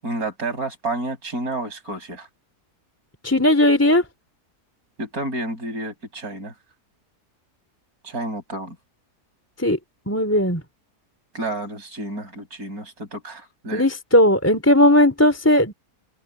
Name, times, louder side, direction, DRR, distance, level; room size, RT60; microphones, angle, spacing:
voice 1, 0.0-2.3 5.0-6.5 8.0-8.8 11.3-13.9, right 2 dB, 65° right, 8.7 m, -30 dB
voice 2, 3.2-4.1 9.6-9.8 10.1-10.6 13.7-15.7, left 1 dB, 10° left, 3.5 m, -17 dB
omnidirectional pair, 1.7 m